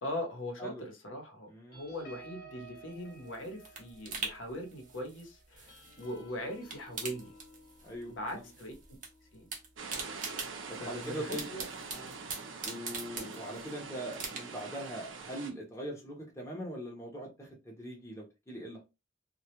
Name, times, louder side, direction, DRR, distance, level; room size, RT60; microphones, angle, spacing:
voice 1, 0.0-7.3 8.1-8.7 9.3-9.5 10.8-11.6 13.2-13.4, left 1 dB, 80° left, 0.8 m, -40 dB
voice 2, 1.5-1.8 7.8-8.4 10.7-11.5 11.9-12.1 12.6-18.8, right 1 dB, 15° left, 0.6 m, -42 dB
sound 1, 1.7-10.6 11.1-11.3 11.6-11.9, right 1 dB, 55° left, 0.9 m, -56 dB
sound 2, 2.9-6.2 6.5-8.0 8.3-9.1 9.3-13.7 14.1-14.8 15.2-15.3, right 4 dB, 40° right, 0.7 m, -42 dB
sound 3, 9.8-15.5, right 4 dB, 80° right, 0.6 m, -44 dB
2.2 x 2.1 x 2.8 m
head